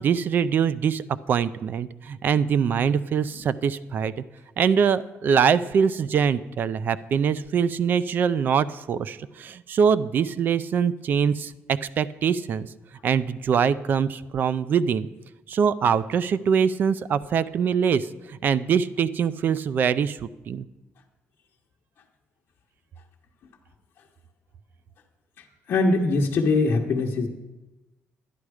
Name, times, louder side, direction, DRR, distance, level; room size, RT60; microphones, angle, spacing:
voice 1, 0.0-4.1 4.6-12.7 13.0-15.1 15.5-20.2 20.5-20.7, right 7 dB, 45° right, 16 dB, 0.4 m, -23 dB
voice 2, 25.4-27.3, left 3 dB, 50° left, -3 dB, 1.0 m, -22 dB
12.0 x 10.0 x 4.9 m, 1.1 s
cardioid pair, 160°, 5 cm